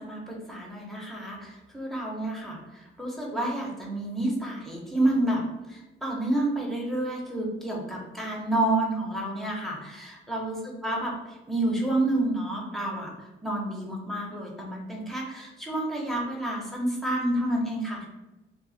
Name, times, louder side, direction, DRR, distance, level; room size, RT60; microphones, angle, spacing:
voice 1, 0.0-5.4 5.7-18.1, right 1 dB, ahead, -3 dB, 0.9 m, -29 dB
2.7 x 2.3 x 4.0 m, 1.0 s
cardioid pair, 90°, 20 cm